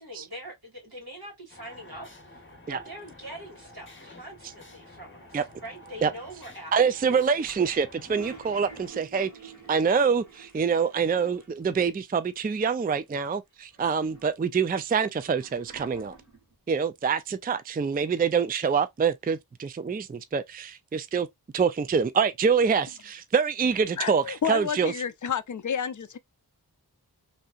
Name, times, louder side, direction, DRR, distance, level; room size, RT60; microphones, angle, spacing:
voice 1, 0.0-2.4 2.7-7.0, right 1 dB, 70° right, 2.3 m, -43 dB
sound 1, 1.5-8.9, left 1 dB, 30° left, 0.9 m, -50 dB
voice 2, 6.7-16.1 16.7-21.3 21.5-24.2 24.5-24.9, right 6 dB, 25° right, 0.3 m, -25 dB
Toilet flush, 7.4-11.8 12.1-12.2 12.4-13.2 13.7-16.6, right 5 dB, 50° right, 1.5 m, -49 dB
voice 3, 24.0-26.2, left 7 dB, 50° left, 0.5 m, -30 dB
3.3 x 2.8 x 2.4 m
wide cardioid pair, 40°, 39 cm